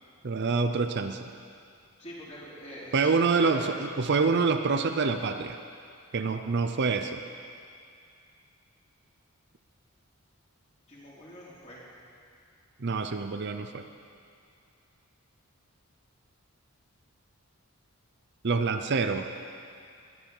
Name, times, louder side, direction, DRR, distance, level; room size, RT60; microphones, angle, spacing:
voice 1, 0.2-1.3 2.9-5.6 6.1-7.2 12.8-13.8 18.4-19.3, right 4 dB, 50° right, 7 dB, 0.6 m, -26 dB
voice 2, 2.0-3.6 10.9-11.8, equal, 30° left, -7 dB, 3.7 m, -44 dB
21.5 x 9.7 x 5.5 m, 2.4 s
head